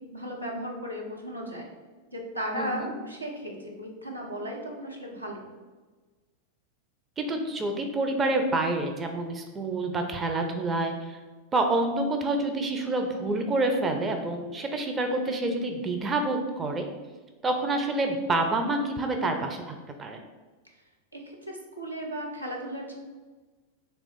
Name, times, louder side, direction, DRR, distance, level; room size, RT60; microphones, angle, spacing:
voice 1, 0.0-1.7 2.1-5.5 21.1-22.9, equal, 85° right, -1 dB, 0.7 m, -36 dB
voice 2, 2.5-2.9 7.2-11.2 11.5-16.9 17.4-20.2, right 2 dB, 20° right, 4 dB, 0.5 m, -28 dB
3.4 x 2.9 x 4.1 m, 1.3 s
figure-of-eight pair, 90°, 0 cm